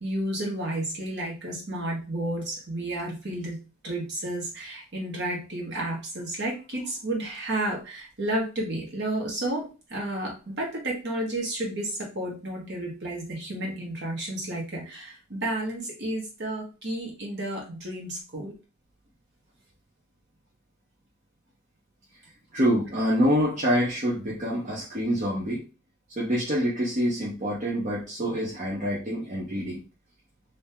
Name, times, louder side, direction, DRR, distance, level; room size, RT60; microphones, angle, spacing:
voice 1, 0.0-18.5, right 1 dB, 55° right, -1 dB, 1.2 m, -32 dB
voice 2, 22.5-25.6 26.2-29.8, equal, 35° right, -5 dB, 0.8 m, -26 dB
3.5 x 2.7 x 2.7 m, 0.31 s
head